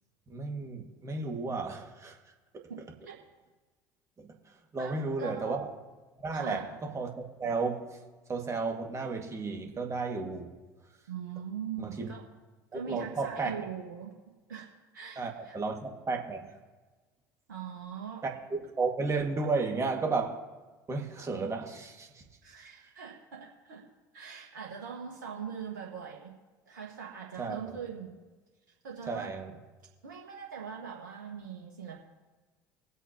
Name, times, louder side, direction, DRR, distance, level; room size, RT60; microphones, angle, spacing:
voice 1, 0.3-2.2 2.5-2.7 4.2-4.3 4.7-5.7 6.2-8.0 8.3-10.5 11.8-12.1 12.7-13.7 15.2-16.5 18.2-20.4 20.9-22.3 27.4-27.7 29.1-29.5, right 4 dB, 30° right, 2 dB, 2.2 m, -33 dB
voice 2, 2.7-3.2 4.8-5.6 6.3-6.7 11.1-12.2 12.7-14.1 14.5-14.7 14.9-15.6 17.5-18.2 22.4-23.8 24.1-26.3 26.7-28.2 28.8-29.3 30.0-32.0, right 7 dB, 90° right, -1 dB, 1.6 m, -41 dB
22.5 x 8.1 x 3.0 m, 1.3 s
hypercardioid pair, 70°, 10 cm